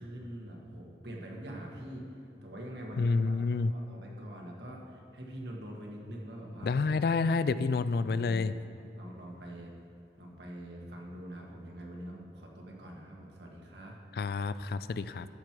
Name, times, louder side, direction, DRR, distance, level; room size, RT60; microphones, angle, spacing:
voice 1, 0.0-2.0 2.4-6.7 8.2-8.5 8.8-9.7 10.2-14.0, right 1 dB, 80° right, -1 dB, 1.6 m, -44 dB
voice 2, 3.0-3.7 6.6-8.5 14.1-15.3, left 4 dB, 60° left, 14 dB, 0.3 m, -29 dB
13.0 x 6.0 x 4.7 m, 2.6 s
head